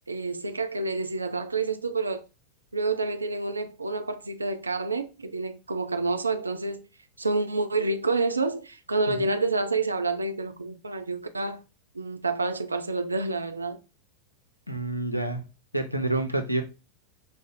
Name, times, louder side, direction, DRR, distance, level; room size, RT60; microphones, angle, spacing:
voice 1, 0.1-2.2 2.7-6.9 7.2-11.6 11.9-13.8, right 3 dB, 80° right, 0.4 m, -28 dB
voice 2, 14.7-15.4 15.7-16.6, right 2 dB, 90° left, 0.6 m, -28 dB
5.0 x 2.0 x 3.6 m
figure-of-eight pair, 90°, 0 cm